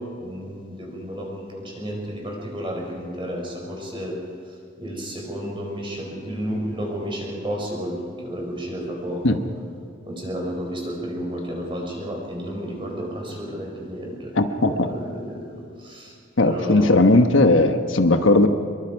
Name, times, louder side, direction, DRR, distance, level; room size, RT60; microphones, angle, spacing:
voice 1, 0.0-4.2 4.8-9.4 10.0-16.1 16.4-17.1, equal, 25° right, -1 dB, 4.9 m, -32 dB
voice 2, 14.3-14.9 16.4-18.5, left 2 dB, 75° left, 7 dB, 1.2 m, -17 dB
25.5 x 22.5 x 4.7 m, 2.3 s
head